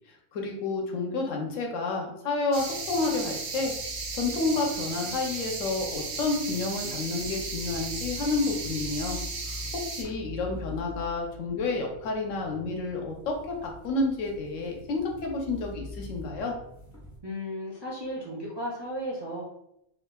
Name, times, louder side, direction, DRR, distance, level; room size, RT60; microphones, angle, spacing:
voice 1, 0.3-3.7 4.2-9.2 9.5-9.6 9.9-16.5, left 3 dB, 70° left, 1 dB, 1.0 m, -30 dB
sound 1, 2.5-17.2, left 2 dB, 20° left, 0.4 m, -44 dB
sound 2, 2.5-10.0, right 4 dB, 75° right, 1.1 m, -35 dB
voice 2, 17.2-19.4, equal, 45° right, -6 dB, 0.3 m, -34 dB
3.5 x 2.4 x 2.2 m, 0.80 s
omnidirectional pair, 1.4 m